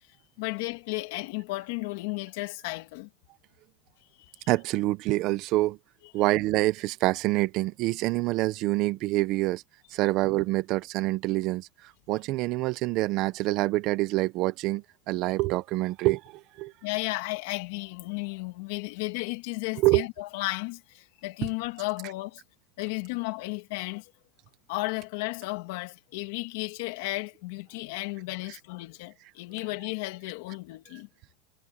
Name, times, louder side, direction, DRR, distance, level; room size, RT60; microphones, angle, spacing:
voice 1, 0.4-3.1 4.2-4.5 16.8-22.4 22.8-24.1 24.7-31.1, left 23 dB, 55° left, 1.8 m, -34 dB
voice 2, 4.5-5.8 6.1-9.6 9.9-11.7 12.1-16.7 19.8-20.0, right 18 dB, 35° right, 0.6 m, -26 dB
supercardioid pair, 175°, 0 cm